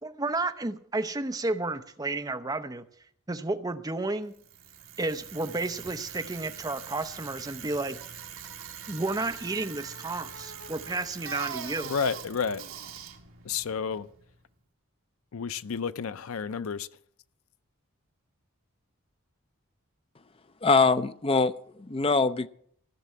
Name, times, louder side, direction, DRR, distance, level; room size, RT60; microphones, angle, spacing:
voice 1, 0.0-2.8 3.3-4.3 5.0-8.0 8.9-11.9, right 2 dB, 15° right, 0.6 m, -32 dB
Bicycle, 4.3-14.4, right 7 dB, 65° right, 1.7 m, -42 dB
voice 2, 11.8-12.6 13.4-14.1 15.3-16.9, left 6 dB, 70° left, 0.5 m, -31 dB
voice 3, 20.6-22.5, left 4 dB, 25° left, 0.5 m, -23 dB
15.0 x 6.7 x 8.4 m
head